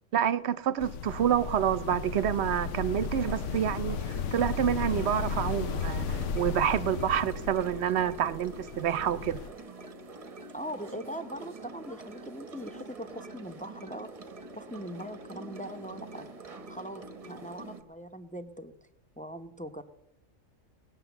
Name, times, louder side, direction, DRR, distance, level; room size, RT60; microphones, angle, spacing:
voice 1, 0.1-9.4, right 9 dB, 60° right, 0.9 m, -28 dB
sound 1, 0.8-9.5, left 5 dB, 70° left, 1.0 m, -35 dB
sound 2, 3.1-17.8, right 2 dB, 30° right, 0.9 m, -46 dB
voice 2, 10.5-14.1 14.5-16.3 16.7-18.7 19.2-19.8, equal, 10° left, 0.5 m, -41 dB
19.0 x 7.5 x 7.0 m
omnidirectional pair, 1.4 m